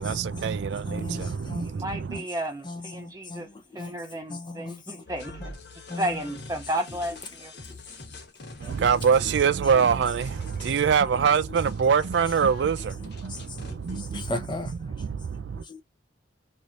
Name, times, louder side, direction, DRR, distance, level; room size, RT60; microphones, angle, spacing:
voice 1, 0.0-2.2 8.6-14.4 14.8-15.6, right 6 dB, 65° right, 0.4 m, -24 dB
voice 2, 0.9-1.7 2.1-2.3 2.6-4.0 4.3-5.0 5.4-5.5 5.9-6.2 7.7-7.8 8.6-8.8 13.2-14.9 15.5-15.8, left 2 dB, 25° left, 0.7 m, -38 dB
voice 3, 1.6-3.5 3.7-5.4 5.9-7.5, right 1 dB, 20° right, 0.9 m, -32 dB
sound 1, 5.1-14.2, left 2 dB, 60° left, 1.2 m, -45 dB
3.2 x 2.7 x 2.4 m
head